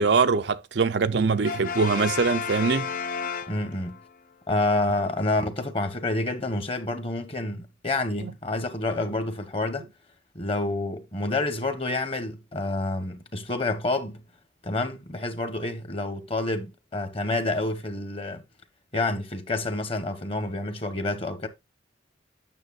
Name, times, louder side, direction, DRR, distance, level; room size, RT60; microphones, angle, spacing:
voice 1, 0.0-2.9 8.2-8.3, right 4 dB, 65° right, 0.6 m, -23 dB
Brass instrument, 1.4-4.1, left 6 dB, 45° left, 0.6 m, -32 dB
voice 2, 3.5-4.0 4.5-9.8 10.3-14.2 14.6-18.4 18.9-21.5, left 2 dB, 30° left, 1.1 m, -28 dB
9.1 x 6.8 x 2.4 m
head